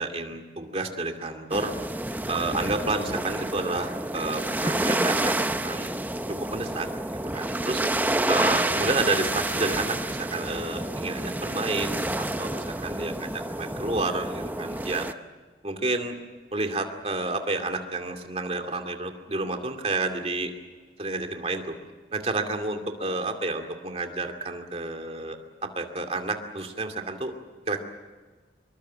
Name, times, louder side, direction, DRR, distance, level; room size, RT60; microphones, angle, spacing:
voice 1, 0.0-1.7 2.3-5.9 6.4-7.8 8.3-15.1 15.6-16.1 16.5-20.5 21.0-21.8 22.1-25.4 25.6-27.3 27.7-27.8, right 2 dB, 35° right, 5 dB, 2.5 m, -30 dB
sound 1, 1.5-15.1, right 1 dB, 10° right, 0.7 m, -29 dB
25.5 x 23.0 x 7.5 m, 1.4 s
head